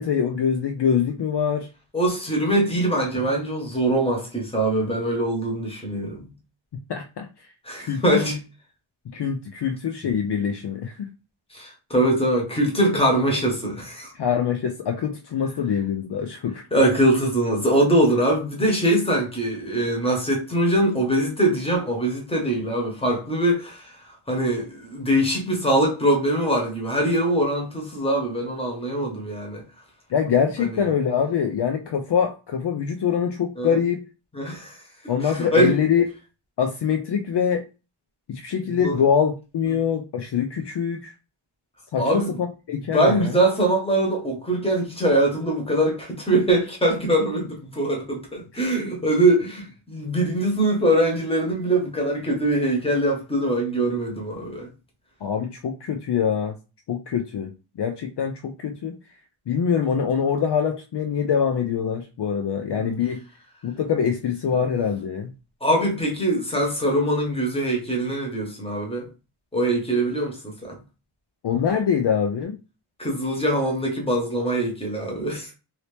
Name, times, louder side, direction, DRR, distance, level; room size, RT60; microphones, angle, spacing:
voice 1, 0.0-1.7 6.9-7.3 7.8-8.2 9.1-11.1 14.1-16.6 30.1-34.0 35.1-36.0 36.6-37.6 38.3-41.1 41.9-43.3 55.2-56.6 56.9-57.5 57.8-58.9 59.5-63.2 63.6-65.3 71.4-72.6, left 7 dB, 55° left, 0.5 m, -24 dB
voice 2, 1.9-6.3 7.6-8.4 11.5-14.1 16.7-23.9 24.3-29.6 30.6-30.8 33.6-33.8 34.3-34.8 35.2-35.8 38.8-39.0 42.0-42.3 42.9-54.7 62.7-62.9 65.6-69.1 69.5-70.4 70.6-70.8 73.0-75.5, right 1 dB, 10° left, 1.1 m, -22 dB
2.8 x 2.8 x 3.3 m
wide cardioid pair, 125°, 50 cm